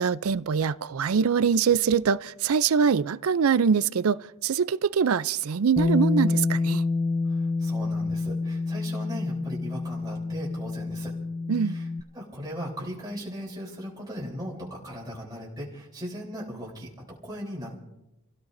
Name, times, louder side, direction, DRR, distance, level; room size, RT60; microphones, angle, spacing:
voice 1, 0.0-6.8 11.5-11.8, right 6 dB, 80° right, 0.5 m, -23 dB
Bass guitar, 5.8-12.0, left 3 dB, 25° left, 0.4 m, -27 dB
voice 2, 7.3-11.1 11.6-11.9 12.1-17.8, equal, 15° right, 3.5 m, -38 dB
30.0 x 16.5 x 2.6 m
head